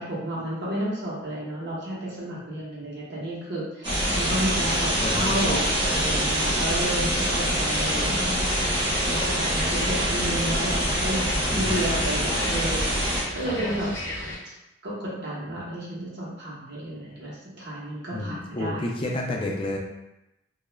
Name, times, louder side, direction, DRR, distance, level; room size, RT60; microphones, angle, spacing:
voice 1, 0.0-8.4 9.0-13.9 14.8-18.9, right 1 dB, 60° right, -7 dB, 0.8 m, -32 dB
sound 1, 3.8-13.2, equal, 25° right, 0.7 m, -25 dB
voice 2, 4.3-4.7 5.0-5.7 7.9-8.2 11.5-11.9 13.4-13.9 18.1-19.8, left 2 dB, 25° left, -1 dB, 0.4 m, -31 dB
sound 2, 7.6-14.4, left 1 dB, 80° left, 0.6 m, -35 dB
2.3 x 2.0 x 3.0 m, 0.91 s
head